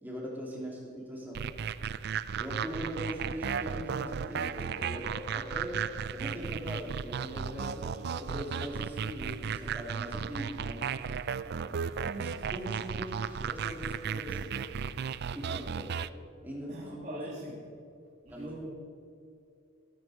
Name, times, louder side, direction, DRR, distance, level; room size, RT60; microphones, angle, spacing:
voice 1, 0.0-1.5 2.4-5.8 6.1-10.8 12.0-14.7 15.3-16.0 16.4-16.7 17.1-17.2 18.2-18.5, equal, 10° right, -4 dB, 2.8 m, -41 dB
sound 1, 1.3-16.1, right 7 dB, 50° right, 0.4 m, -35 dB
Piano, 4.8-8.1, left 3 dB, 25° left, 1.6 m, -53 dB
voice 2, 11.4-11.8 16.7-17.6 18.2-18.7, equal, 30° right, -6 dB, 1.9 m, -43 dB
14.0 x 13.0 x 4.9 m, 2.5 s
head